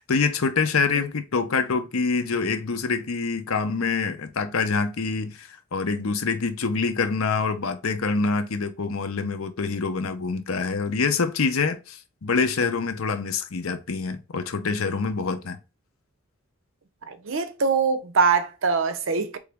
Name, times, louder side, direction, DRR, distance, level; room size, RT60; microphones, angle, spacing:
voice 1, 0.0-15.6, left 4 dB, 85° left, 0.7 m, -26 dB
voice 2, 17.1-19.4, right 5 dB, 70° right, 0.6 m, -23 dB
3.9 x 3.5 x 3.4 m
head